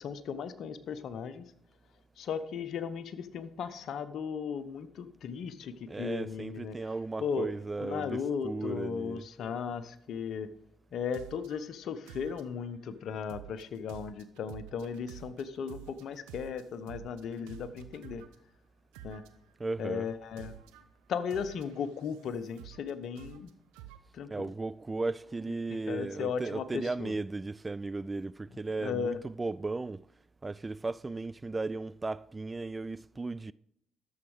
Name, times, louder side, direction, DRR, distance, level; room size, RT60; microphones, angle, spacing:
voice 1, 0.0-1.4 2.2-6.8 7.2-7.5 7.8-10.5 10.9-18.2 19.0-19.2 19.8-20.5 21.1-23.5 24.1-24.5 25.7-27.2 28.8-29.2, left 6 dB, 65° left, 0.8 m, -36 dB
voice 2, 5.9-9.3 19.6-20.1 24.3-30.1 30.4-33.5, right 3 dB, 25° right, 0.3 m, -36 dB
sound 1, 11.1-11.6 12.1-12.8 13.3-18.4 18.9-19.5 20.4-20.8 21.3-22.9 23.2-24.0, right 12 dB, 80° right, 0.7 m, -50 dB
12.0 x 7.3 x 4.8 m
hypercardioid pair, 50°, 0 cm